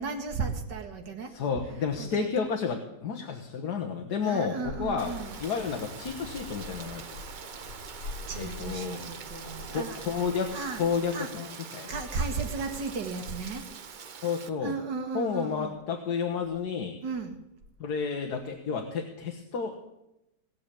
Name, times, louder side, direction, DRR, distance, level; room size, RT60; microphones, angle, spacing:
voice 1, 0.0-1.6 2.0-2.3 4.2-5.3 8.3-10.0 10.5-10.8 11.1-11.3 11.9-13.7 14.6-15.7 17.0-17.4, right 4 dB, 85° right, 5 dB, 2.3 m, -34 dB
voice 2, 1.3-7.1 8.3-9.0 9.4-11.9 14.2-14.7 15.1-17.0 17.8-19.8, left 6 dB, 65° left, 4 dB, 1.8 m, -31 dB
sound 1, 4.6-11.3, left 2 dB, 85° left, 2.2 m, -44 dB
Rain, 5.0-14.5, right 6 dB, 65° right, 0.4 m, -44 dB
18.5 x 6.9 x 8.4 m, 0.89 s
omnidirectional pair, 1.9 m